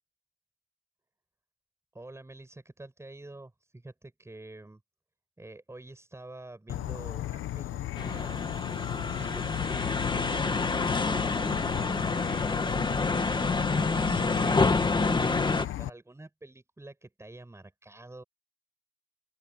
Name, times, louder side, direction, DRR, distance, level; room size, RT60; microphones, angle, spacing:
voice 1, 1.9-4.8 5.4-18.2, right 2 dB, 15° right, 6.8 m, -48 dB
Insect / Frog, 6.7-15.9, left 13 dB, 80° left, 1.3 m, -35 dB
sound 1, 8.0-15.7, left 3 dB, 25° left, 1.9 m, -28 dB
open air
cardioid pair, 90°, 20 cm